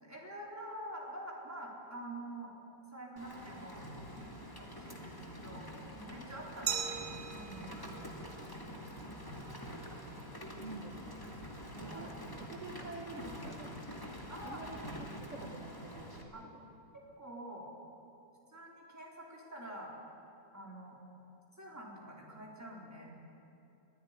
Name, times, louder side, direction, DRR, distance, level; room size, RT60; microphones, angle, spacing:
voice 1, 0.0-2.5 2.9-3.8 4.2-5.7 5.9-6.9 7.3-8.8 11.8-12.1 14.3-14.6 15.3-15.5 16.3-16.5 16.9-17.7 18.5-20.0 20.5-21.0 21.5-23.2, right 1 dB, 10° right, -3 dB, 4.2 m, -47 dB
Rain, 3.2-16.2, equal, 15° left, 2.3 m, -46 dB
Glass, 6.7-9.4, right 8 dB, 80° right, 2.0 m, -41 dB
voice 2, 10.6-11.2 11.8-12.1 12.4-13.7 14.4-16.3, right 2 dB, 50° right, 0 dB, 1.9 m, -47 dB
23.5 x 16.0 x 9.8 m, 2.8 s
omnidirectional pair, 1.7 m